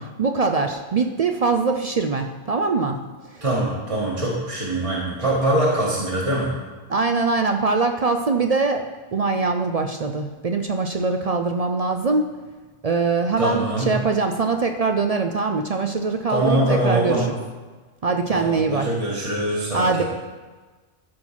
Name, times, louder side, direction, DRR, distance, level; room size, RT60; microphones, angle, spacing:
voice 1, 0.2-3.1 3.3-3.4 6.9-12.3 12.8-17.3 18.0-18.9 19.7-20.0, right 4 dB, 50° right, 5 dB, 0.4 m, -22 dB
voice 2, 3.4-6.5 13.4-13.9 16.3-17.2 18.3-20.0, right 1 dB, 30° right, -6 dB, 1.5 m, -23 dB
13.5 x 4.5 x 5.7 m, 1.3 s
omnidirectional pair, 1.2 m